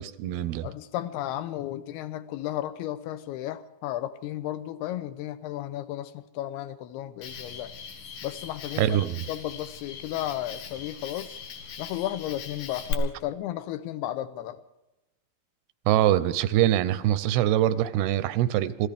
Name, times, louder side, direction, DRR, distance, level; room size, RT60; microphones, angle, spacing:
voice 1, 0.0-0.7 8.8-9.2 15.9-18.9, right 12 dB, 85° right, 2.6 m, -24 dB
voice 2, 0.6-7.7 8.2-9.0 9.3-11.4 11.8-14.6, left 13 dB, 90° left, 2.8 m, -34 dB
Cricket, 7.2-12.9, left 7 dB, 65° left, 2.9 m, -40 dB
25.5 x 15.5 x 3.5 m
omnidirectional pair, 4.5 m